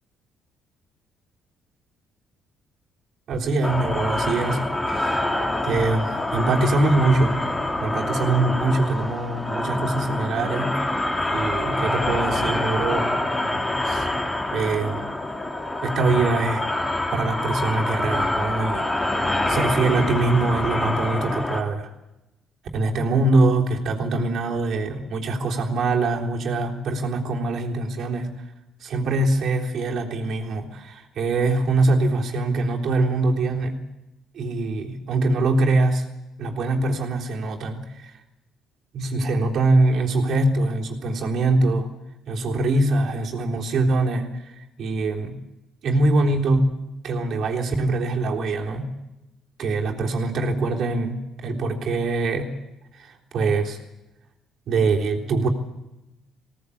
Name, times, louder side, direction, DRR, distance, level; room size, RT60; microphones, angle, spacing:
voice 1, 3.3-5.3 5.6-7.4 7.8-11.0 11.3-13.1 13.8-14.1 14.5-15.0 15.8-16.6 17.1-19.2 19.5-21.9 22.7-28.3 28.8-33.9 34.3-36.0 36.4-38.1 38.9-41.9 42.3-45.4 45.8-46.8 47.0-49.0 49.6-52.6 52.9-53.8 54.7-55.5, right 2 dB, 60° right, 0 dB, 3.6 m, -23 dB
sound 1, 3.6-21.6, left 1 dB, 15° left, 2.8 m, -26 dB
20.5 x 17.5 x 8.6 m, 0.97 s
cardioid pair, 105°, 0 cm